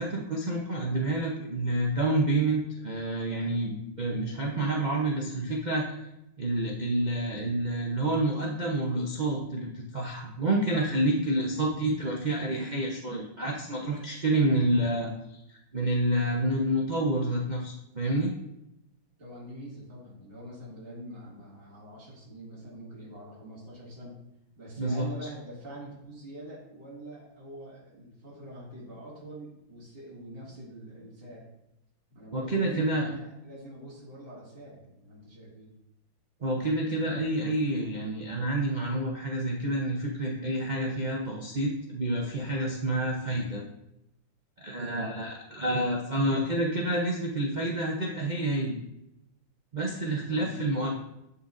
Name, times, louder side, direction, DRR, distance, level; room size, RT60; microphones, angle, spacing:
voice 1, 0.0-5.9 6.4-15.4 15.7-18.3 24.8-25.0 32.3-33.1 36.4-43.6 44.6-48.8 49.7-50.9, right 1 dB, 55° right, -2 dB, 0.4 m, -28 dB
voice 2, 19.2-24.2 24.6-31.4 32.1-35.7 44.8-45.0 50.3-50.6, right 1 dB, 30° right, -8 dB, 2.5 m, -45 dB
11.0 x 5.5 x 2.6 m, 0.86 s
omnidirectional pair, 2.1 m